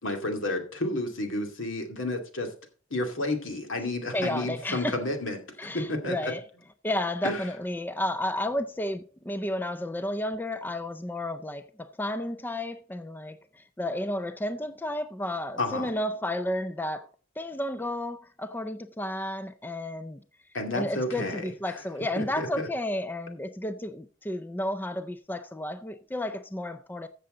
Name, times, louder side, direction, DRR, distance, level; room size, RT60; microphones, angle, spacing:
voice 1, 0.0-2.5 2.9-5.4 5.7-6.3 7.2-7.4 15.6-15.9 20.5-21.7 22.2-22.5, left 2 dB, 70° left, 2.4 m, -31 dB
voice 2, 4.1-5.0 5.6-6.4 6.8-17.1 17.4-20.2 20.7-27.1, left 1 dB, 10° left, 0.4 m, -32 dB
14.5 x 6.8 x 3.8 m
head